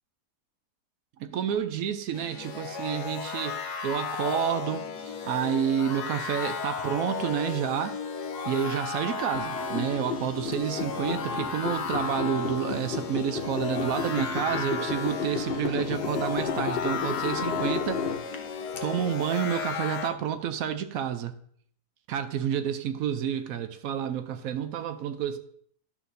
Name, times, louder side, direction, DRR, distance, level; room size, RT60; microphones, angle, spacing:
voice 1, 1.2-8.0 8.4-18.1 18.8-21.3 22.1-25.4, right 9 dB, 70° right, 0.9 m, -29 dB
sound 1, 2.1-20.1, left 5 dB, 80° left, 1.3 m, -34 dB
sound 2, 9.3-18.8, left 5 dB, 55° left, 0.7 m, -33 dB
11.5 x 6.3 x 2.6 m
omnidirectional pair, 1.7 m